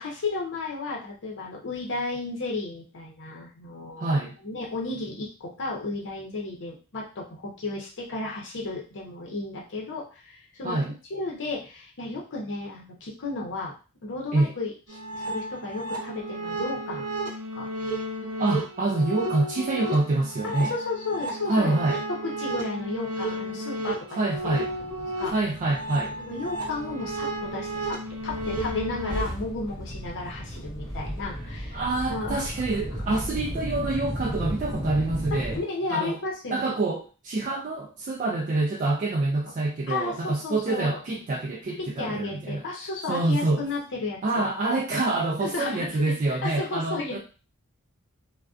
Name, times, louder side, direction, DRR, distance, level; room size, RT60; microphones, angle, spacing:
voice 1, 0.0-4.1 4.4-10.8 11.1-13.7 14.0-14.7 15.1-17.0 17.5-17.7 20.4-21.8 22.2-24.3 24.7-24.8 25.2-25.3 26.2-28.0 28.2-31.8 32.1-32.4 35.3-36.8 39.9-41.0 42.0-44.5 45.4-46.2 46.4-47.2, left 3 dB, 55° left, -3 dB, 0.7 m, -33 dB
voice 2, 4.0-4.4 10.6-10.9 14.3-14.5 18.4-20.7 21.5-22.0 24.1-24.7 25.2-26.2 31.7-35.6 35.9-36.2 36.5-42.6 43.1-43.7 44.2-47.2, right 2 dB, 35° right, -2 dB, 0.3 m, -26 dB
sound 1, 14.9-29.2, right 1 dB, 85° right, 0.6 m, -33 dB
sound 2, 24.3-35.6, equal, 20° left, 0.6 m, -36 dB
2.4 x 2.2 x 2.4 m, 0.34 s
head